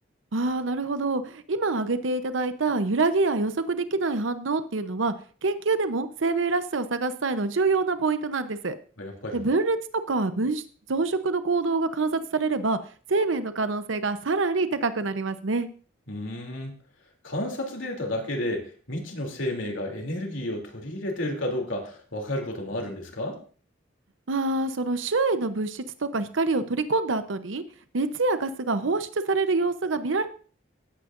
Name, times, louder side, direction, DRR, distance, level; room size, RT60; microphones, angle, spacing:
voice 1, 0.3-5.1 5.4-8.8 9.3-9.8 10.1-10.6 10.9-12.8 13.1-15.7 24.3-27.6 27.9-30.3, right 3 dB, 85° right, 11 dB, 0.8 m, -26 dB
voice 2, 9.0-9.4 16.1-16.7 17.2-23.4, left 1 dB, 90° left, 1 dB, 2.9 m, -31 dB
16.5 x 8.8 x 2.5 m, 0.40 s
head